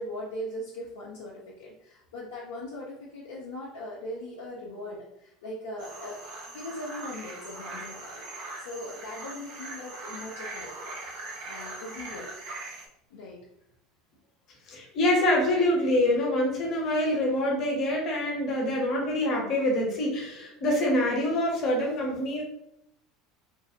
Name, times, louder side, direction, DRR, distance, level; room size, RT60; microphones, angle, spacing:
voice 1, 0.0-8.2 8.6-11.0 11.5-12.3 13.1-13.4, left 1 dB, 75° left, -5 dB, 0.5 m, -40 dB
sound 1, 5.8-12.9, right 2 dB, 65° right, 0.5 m, -41 dB
voice 2, 14.7-22.4, left 1 dB, 50° left, -1 dB, 0.9 m, -25 dB
2.5 x 2.0 x 2.6 m, 0.76 s
hypercardioid pair, 75°, 0 cm